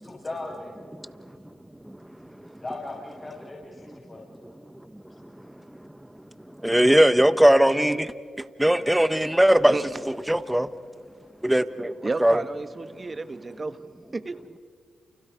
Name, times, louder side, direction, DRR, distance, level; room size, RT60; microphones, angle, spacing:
voice 1, 0.0-0.8 2.6-4.2, left 2 dB, 35° left, -3 dB, 7.1 m, -37 dB
voice 2, 6.6-8.1 8.6-9.7 10.1-10.7 11.4-11.9 12.2-12.4, right 1 dB, 10° right, 12 dB, 1.4 m, -19 dB
voice 3, 12.0-13.8 14.1-14.3, right 3 dB, 40° right, 11 dB, 1.5 m, -31 dB
29.5 x 29.5 x 5.3 m, 2.1 s
supercardioid pair, 45°, 0 cm